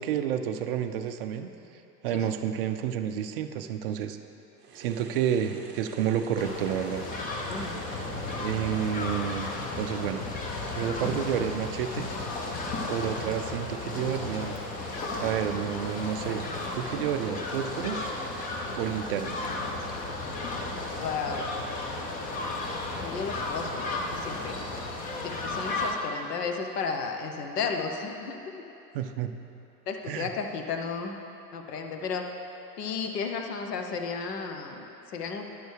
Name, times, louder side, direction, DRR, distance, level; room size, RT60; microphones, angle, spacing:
voice 1, 0.0-1.5 2.0-4.2 4.7-7.0 8.4-9.5 9.8-10.2 10.5-12.1 12.9-14.6 15.2-16.5 16.7-18.1 18.8-19.4 28.9-29.3 30.1-30.3, right 9 dB, 40° right, 7 dB, 0.4 m, -30 dB
sound 1, 4.6-17.3, right 4 dB, 20° right, 0.8 m, -49 dB
sound 2, 6.4-25.9, left 2 dB, 15° left, 0.6 m, -34 dB
voice 2, 7.5-7.8 21.0-21.5 23.0-24.6 25.2-28.4 29.9-31.1 31.5-32.3 32.8-35.4, left 5 dB, 65° left, 4 dB, 1.0 m, -33 dB
11.0 x 6.2 x 3.4 m, 3.0 s
hypercardioid pair, 115°, 50 cm